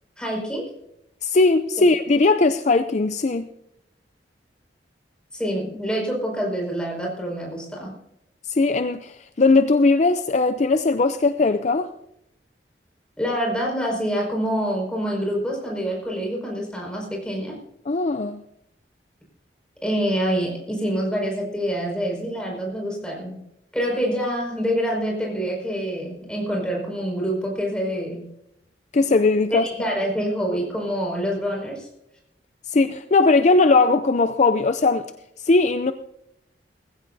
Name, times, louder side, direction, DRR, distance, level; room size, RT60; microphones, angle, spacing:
voice 1, 0.2-0.7 1.8-1.9 5.3-7.9 13.2-17.6 19.8-23.4 23.7-28.3 29.5-31.9, equal, 5° left, 5.3 m, -26 dB
voice 2, 1.2-3.5 8.5-11.9 17.9-18.4 28.9-29.7 32.7-35.0 35.4-35.9, left 3 dB, 40° left, 0.5 m, -19 dB
19.5 x 15.5 x 2.7 m
head